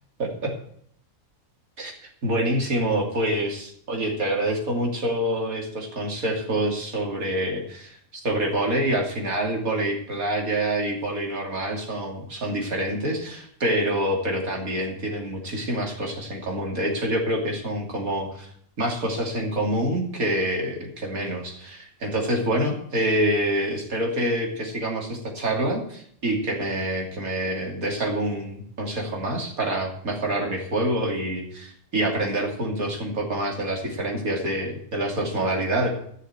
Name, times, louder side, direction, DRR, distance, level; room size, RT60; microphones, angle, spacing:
voice 1, 0.2-0.5 1.8-1.9 2.2-18.5 18.8-35.9, right 1 dB, 75° right, 0 dB, 3.3 m, -26 dB
14.5 x 6.4 x 8.0 m, 0.65 s
omnidirectional pair, 1.5 m